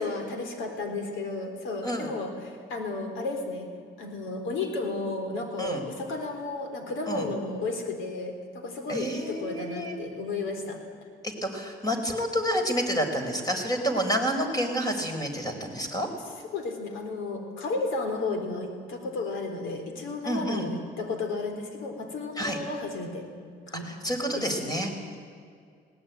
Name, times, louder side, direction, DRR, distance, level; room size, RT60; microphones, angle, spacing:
voice 1, 0.0-3.7 4.0-10.8 16.5-23.3 23.7-23.9 24.3-24.5, left 3 dB, 85° left, 5 dB, 3.9 m, -33 dB
voice 2, 8.9-10.0 11.4-16.1 20.2-20.7 22.4-22.6 23.9-24.9, equal, 20° left, 4 dB, 4.6 m, -29 dB
19.5 x 18.5 x 9.4 m, 2.2 s
cardioid pair, 90°, 20 cm